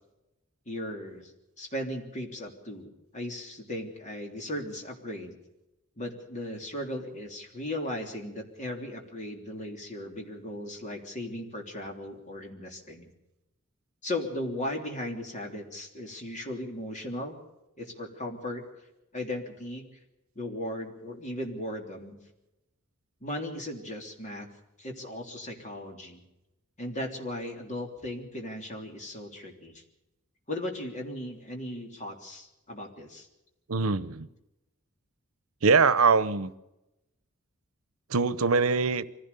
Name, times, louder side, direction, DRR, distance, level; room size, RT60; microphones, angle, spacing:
voice 1, 0.6-1.3 1.6-5.4 6.0-13.1 14.0-17.4 17.8-18.6 19.1-19.8 20.3-22.2 23.2-24.5 24.8-26.2 26.8-29.8 30.5-33.3, left 1 dB, 35° left, 3.3 m, -37 dB
voice 2, 33.7-34.3 35.6-36.5 38.1-39.1, right 4 dB, 85° right, 0.9 m, -23 dB
24.5 x 16.0 x 6.8 m
head